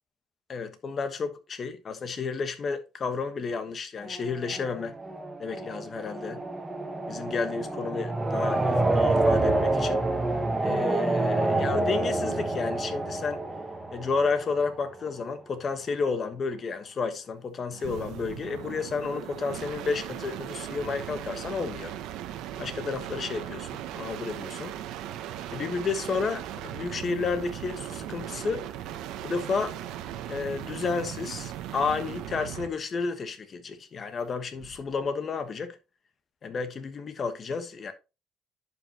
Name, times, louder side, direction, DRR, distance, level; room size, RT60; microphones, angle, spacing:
voice 1, 0.5-4.9 5.4-6.4 7.1-10.0 10.6-13.4 13.9-21.9 22.6-24.8 25.5-28.6 29.2-29.8 30.3-35.8 36.4-37.9, left 4 dB, 35° left, 1.3 m, -31 dB
sound 1, 4.0-14.9, right 2 dB, 10° right, 1.3 m, -28 dB
sound 2, 17.7-32.8 34.5-35.0, right 11 dB, 80° right, 1.0 m, -38 dB
10.5 x 5.5 x 3.0 m
cardioid pair, 125°, 0 cm